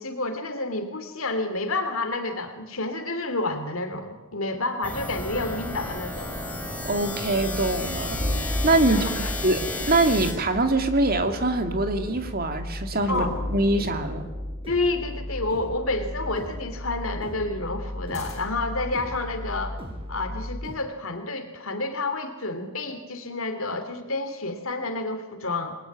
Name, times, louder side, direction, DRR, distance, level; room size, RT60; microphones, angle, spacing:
voice 1, 0.0-6.3 8.8-9.3 13.1-13.3 14.7-19.8 20.1-25.8, left 2 dB, 65° left, 8 dB, 2.6 m, -29 dB
sound 1, 4.8-10.3, left 1 dB, 5° left, 4.5 m, -32 dB
voice 2, 6.8-9.0 9.4-14.3, right 2 dB, 45° right, 7 dB, 2.5 m, -24 dB
sound 2, 7.3-20.8, left 1 dB, 25° right, 5.1 m, -36 dB
sound 3, 8.1-10.9 13.1-15.8 18.1-18.8, left 1 dB, 30° left, 7.4 m, -35 dB
28.0 x 21.0 x 9.4 m, 1.1 s
head